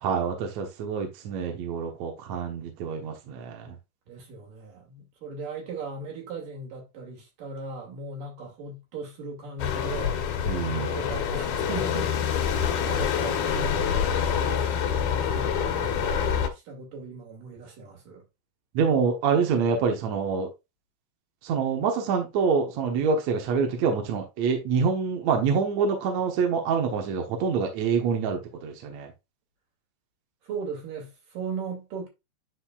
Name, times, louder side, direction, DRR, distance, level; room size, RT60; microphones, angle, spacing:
voice 1, 0.0-3.8 10.5-10.9 18.7-20.5 21.4-29.1, right 5 dB, 65° right, 2.3 m, -26 dB
voice 2, 4.1-10.2 10.7-13.8 14.3-18.2 30.4-32.1, right 3 dB, 80° right, 4.1 m, -38 dB
sound 1, 9.6-16.5, left 7 dB, 70° left, 2.4 m, -26 dB
10.0 x 4.4 x 2.4 m
omnidirectional pair, 3.7 m